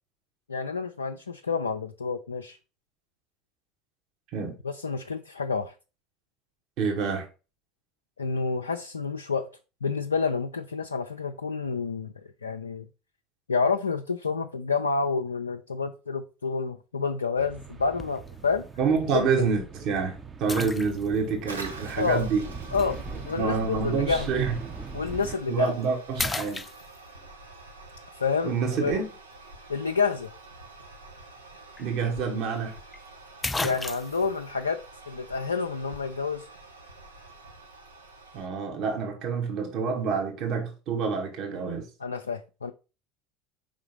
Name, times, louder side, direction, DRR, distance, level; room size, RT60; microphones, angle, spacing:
voice 1, 0.5-2.6 4.6-5.7 8.2-9.5 9.8-12.9 13.5-18.7 19.1-19.5 22.0-22.3 22.7-23.0 23.3-24.3 24.9-25.7 28.2-28.5 28.8-28.9 29.7-30.3 33.6-36.5 42.0-42.7, left 5 dB, 85° left, 0.4 m, -29 dB
voice 2, 6.8-7.3 18.8-22.5 23.4-24.6 25.5-26.7 28.4-29.1 31.8-32.8 38.3-41.9, right 5 dB, 50° right, 1.8 m, -27 dB
sound 1, 17.4-25.4, right 4 dB, 25° right, 0.8 m, -41 dB
sound 2, 18.0-18.3 19.0-19.1 20.5-21.3 22.8-22.9 25.1-25.3 25.7-25.9 26.2-27.3 31.4-31.5 31.8-31.9 32.9-33.0 33.4-34.3, left 3 dB, 15° left, 0.4 m, -33 dB
Toilet flush, 21.5-38.5, right 2 dB, 85° right, 1.0 m, -46 dB
4.9 x 3.7 x 5.3 m
figure-of-eight pair, 70°, 0 cm